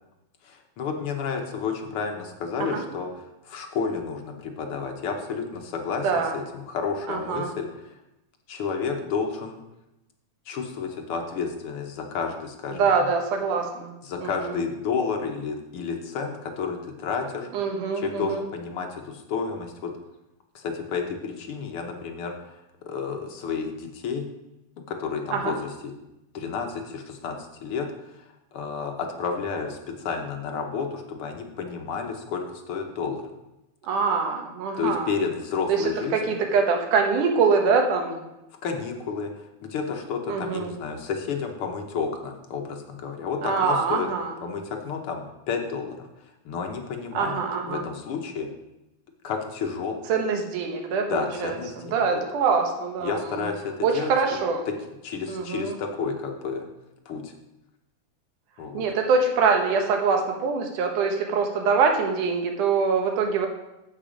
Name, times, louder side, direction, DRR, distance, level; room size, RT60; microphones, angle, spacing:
voice 1, 0.4-7.9 8.5-9.6 10.5-12.9 14.0-17.6 18.0-19.9 20.5-22.6 22.9-24.3 24.9-25.9 26.3-33.2 34.8-36.4 38.6-44.1 44.4-46.1 46.4-47.4 47.7-48.5 49.2-50.0 51.1-52.2 53.0-54.4 54.7-54.8 55.0-56.7 57.0-57.3 58.6-58.9, left 5 dB, 65° left, 3 dB, 1.4 m, -31 dB
voice 2, 6.0-6.3 7.1-7.5 12.7-13.9 14.2-14.6 17.5-18.4 25.3-25.5 33.9-35.1 35.7-35.8 36.1-38.2 40.3-40.7 43.4-44.3 47.1-47.8 50.1-51.6 51.9-53.4 53.8-54.6 55.3-55.8 58.7-63.5, right 5 dB, 85° right, 3 dB, 2.7 m, -24 dB
14.5 x 5.0 x 5.1 m, 0.94 s
omnidirectional pair, 3.5 m